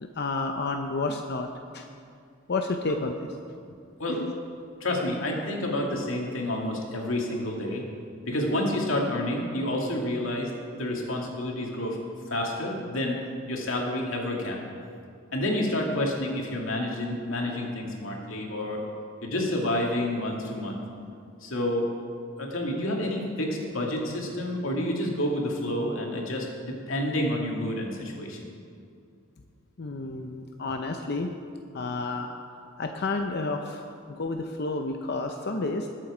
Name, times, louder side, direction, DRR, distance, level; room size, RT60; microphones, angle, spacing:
voice 1, 0.2-1.5 1.7-1.9 2.5-3.1 4.1-4.3 29.8-31.3 31.7-32.3 32.8-35.9, left 3 dB, 55° left, 5 dB, 0.7 m, -30 dB
voice 2, 4.8-7.8 8.3-10.5 10.8-12.0 12.3-13.2 13.5-14.6 15.3-18.8 19.2-20.8 21.4-21.9 22.4-28.4, left 1 dB, 85° left, -1 dB, 2.3 m, -29 dB
21.0 x 7.5 x 5.0 m, 2.3 s
head